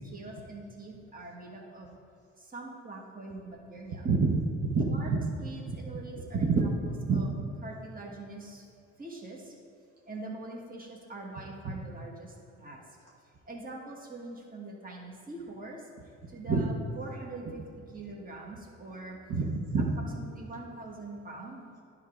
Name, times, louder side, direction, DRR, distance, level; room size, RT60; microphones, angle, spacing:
voice 1, 0.1-2.0 2.4-4.1 4.9-5.1 5.4-7.3 7.6-8.7 9.0-9.5 10.1-12.8 13.5-15.9 16.3-19.2 20.1-21.7, right 2 dB, 30° right, -1 dB, 1.5 m, -43 dB
voice 2, 4.0-4.9 6.3-6.6 7.1-7.3 11.6-11.7 16.5-16.6 19.3-19.8, right 4 dB, 55° right, -3 dB, 1.1 m, -26 dB
10.5 x 3.7 x 4.9 m, 2.6 s
cardioid pair, 90°, 30 cm